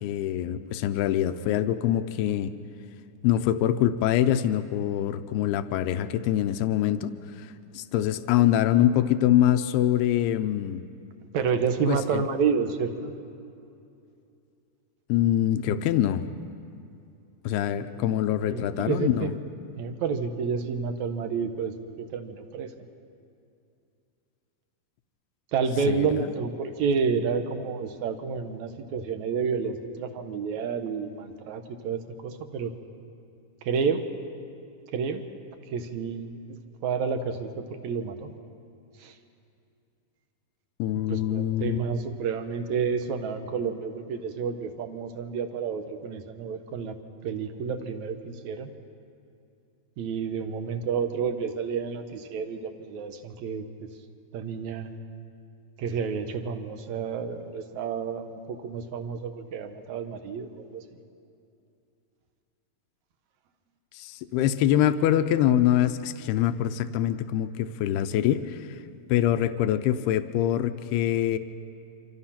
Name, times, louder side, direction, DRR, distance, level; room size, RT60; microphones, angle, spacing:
voice 1, 0.0-2.5 3.2-7.1 7.4-10.8 11.9-12.2 15.1-16.2 17.5-19.3 25.9-26.3 40.8-42.0 63.9-68.8 69.1-71.4, left 11 dB, 90° left, 9 dB, 2.7 m, -24 dB
voice 2, 11.3-13.1 18.4-19.4 19.8-22.7 25.5-32.7 33.7-34.1 34.9-35.2 35.7-36.6 36.8-38.3 39.0-39.2 41.1-47.0 47.2-48.7 50.0-53.9 54.3-54.9 55.8-60.8, right 6 dB, 65° right, 7 dB, 2.1 m, -30 dB
27.5 x 26.0 x 5.9 m, 2.6 s
omnidirectional pair, 4.5 m